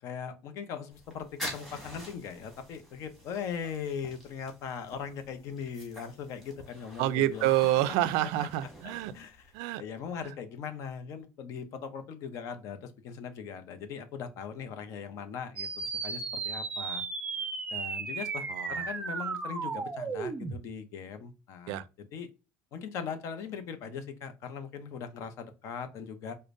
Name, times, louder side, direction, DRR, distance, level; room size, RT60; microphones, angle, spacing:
voice 1, 0.0-7.5 8.8-9.5 9.8-17.0 17.7-21.8 22.1-22.3 22.7-26.3, left 7 dB, 60° left, 0.6 m, -40 dB
sound 1, 0.9-9.6, equal, 5° left, 1.4 m, -47 dB
voice 2, 7.0-9.1 9.5-9.8 10.2-10.3 18.5-18.9 21.7-21.8, right 14 dB, 90° right, 0.3 m, -28 dB
sound 2, 15.6-20.6, right 4 dB, 20° right, 0.5 m, -35 dB
4.9 x 2.1 x 2.5 m
cardioid pair, 140°, 6 cm